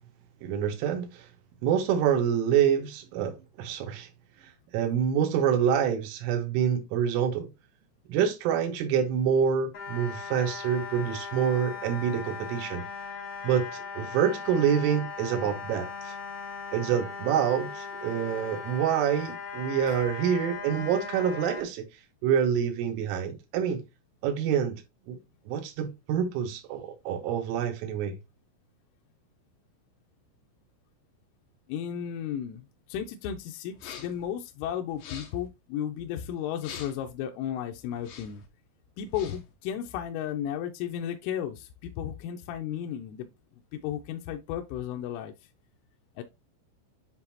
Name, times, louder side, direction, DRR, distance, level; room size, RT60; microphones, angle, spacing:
voice 1, 0.4-1.3 1.6-4.1 4.4-7.5 8.1-12.9 13.4-16.2 16.7-21.9 22.2-23.8 24.2-24.8 25.1-25.2 25.5-28.2, right 8 dB, 75° right, 3.6 m, -27 dB
sound 1, 9.7-21.6, left 5 dB, 45° left, 2.1 m, -39 dB
voice 2, 31.7-38.4 39.0-43.3 43.7-45.3 46.2-46.3, left 9 dB, 85° left, 3.2 m, -34 dB
sound 2, 33.7-34.3 34.9-35.5 36.6-37.1 37.9-38.5 39.0-39.5, left 7 dB, 70° left, 3.6 m, -45 dB
10.0 x 3.8 x 2.8 m
omnidirectional pair, 5.9 m